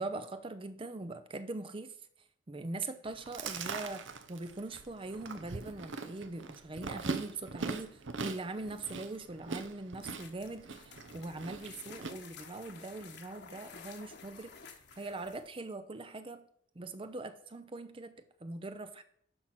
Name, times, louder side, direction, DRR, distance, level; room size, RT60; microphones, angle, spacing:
voice 1, 0.0-1.9 2.5-14.5 15.0-16.4 16.8-18.1 18.4-19.0, right 2 dB, 30° right, 10 dB, 0.5 m, -41 dB
Chewing mastication, 3.1-12.1, right 4 dB, 75° right, 0.9 m, -41 dB
sound 1, 10.0-15.6, left 6 dB, 60° left, 1.3 m, -53 dB
12.0 x 4.5 x 5.8 m, 0.66 s
head